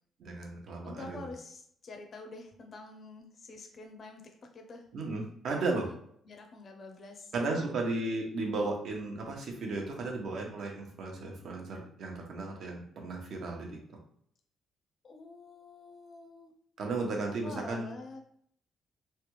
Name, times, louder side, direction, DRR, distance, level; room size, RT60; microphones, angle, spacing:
voice 1, 0.2-1.3 4.9-5.9 7.3-13.7 16.8-17.9, right 3 dB, 70° right, 1 dB, 0.8 m, -34 dB
voice 2, 0.8-4.9 6.3-7.3 15.0-16.5 17.4-18.2, left 3 dB, 50° left, 3 dB, 0.5 m, -47 dB
3.2 x 2.3 x 3.0 m, 0.66 s
cardioid pair, 90°, 0 cm